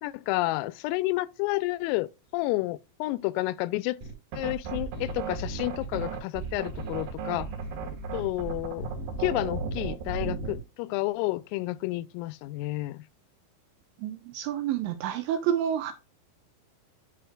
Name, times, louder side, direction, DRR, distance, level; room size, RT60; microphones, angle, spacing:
voice 1, 0.0-2.1 2.3-4.0 4.4-7.5 8.1-8.9 9.2-13.0, left 19 dB, 90° left, 3.2 m, -30 dB
sound 1, 4.0-10.6, right 4 dB, 60° right, 2.6 m, -34 dB
voice 2, 14.0-15.9, right 10 dB, 80° right, 2.6 m, -29 dB
11.0 x 5.4 x 2.2 m
omnidirectional pair, 5.9 m